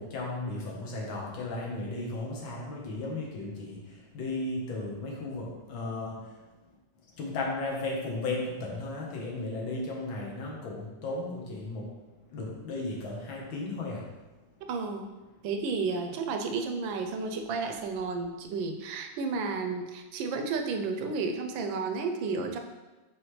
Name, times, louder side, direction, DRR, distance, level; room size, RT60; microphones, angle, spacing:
voice 1, 0.0-6.3 7.2-11.9 12.3-14.1, left 2 dB, 80° left, -2 dB, 1.9 m, -35 dB
voice 2, 14.6-15.1 15.4-22.6, right 4 dB, 80° right, 5 dB, 1.4 m, -32 dB
8.3 x 3.7 x 3.2 m, 1.1 s
omnidirectional pair, 2.1 m